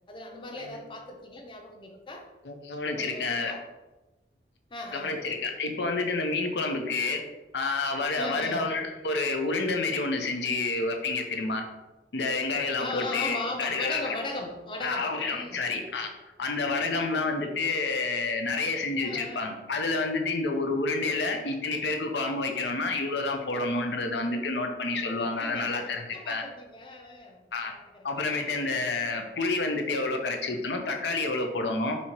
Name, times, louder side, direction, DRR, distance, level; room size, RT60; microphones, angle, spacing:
voice 1, 0.1-2.3 3.0-3.6 4.7-5.3 8.2-8.7 12.8-15.7 16.9-17.5 19.0-19.5 21.1-21.4 22.6-22.8 24.9-28.8, left 2 dB, 25° left, 2 dB, 0.6 m, -39 dB
voice 2, 2.4-3.5 4.9-7.2 7.5-11.6 12.1-14.1 14.8-16.1 16.4-26.4 27.5-27.7 28.0-32.0, left 3 dB, 75° left, 4 dB, 0.7 m, -29 dB
4.3 x 2.8 x 4.4 m, 1.1 s
head